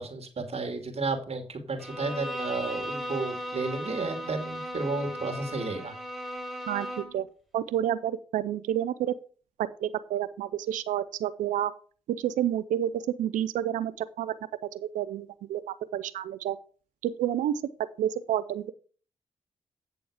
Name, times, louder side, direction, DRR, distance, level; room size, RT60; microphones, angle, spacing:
voice 1, 0.0-5.9, right 3 dB, 50° right, 6 dB, 2.5 m, -32 dB
Bowed string instrument, 1.8-7.2, equal, ahead, 3.7 m, -36 dB
voice 2, 7.5-9.1 9.8-11.7 12.1-14.4 14.7-16.6 17.0-17.6 18.0-18.7, right 11 dB, 80° right, 15 dB, 0.5 m, -29 dB
8.6 x 6.9 x 4.9 m, 0.39 s
hypercardioid pair, 40°, 13 cm